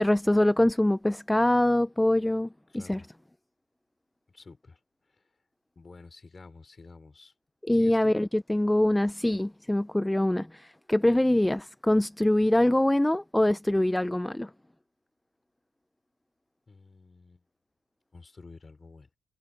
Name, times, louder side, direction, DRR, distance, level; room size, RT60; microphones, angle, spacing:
voice 1, 0.0-3.0 7.6-14.5, left 1 dB, 5° left, 0.5 m, -24 dB
voice 2, 2.7-3.1 4.3-5.2 5.8-7.3 7.7-8.2 16.7-17.4 18.1-19.1, left 3 dB, 30° left, 5.6 m, -50 dB
cardioid pair, 90°, 0 cm